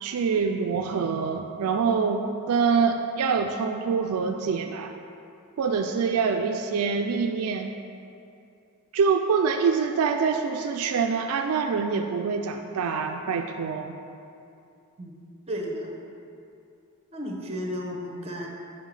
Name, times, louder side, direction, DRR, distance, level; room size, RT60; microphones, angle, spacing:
voice 1, 0.0-4.9 5.6-7.7 8.9-14.0, right 5 dB, 70° right, 4 dB, 0.3 m, -25 dB
voice 2, 15.0-16.0 17.1-18.5, equal, 30° right, 0 dB, 0.9 m, -33 dB
5.8 x 5.6 x 4.8 m, 2.6 s
head